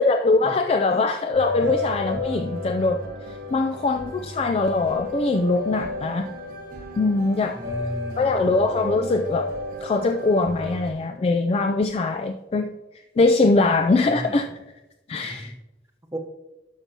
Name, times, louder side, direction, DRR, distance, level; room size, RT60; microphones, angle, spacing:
voice 1, 0.0-3.0 3.5-6.3 7.0-7.6 8.2-9.5 9.8-12.7 13.2-14.5 15.1-15.5, left 3 dB, 35° left, 6 dB, 0.3 m, -22 dB
sound 1, 1.3-10.9, left 1 dB, 50° right, 1.0 m, -33 dB
voice 2, 7.5-8.5 13.5-14.4 15.2-15.5 16.1-16.2, equal, 15° right, 3 dB, 0.9 m, -35 dB
12.0 x 5.9 x 2.8 m, 1.0 s
head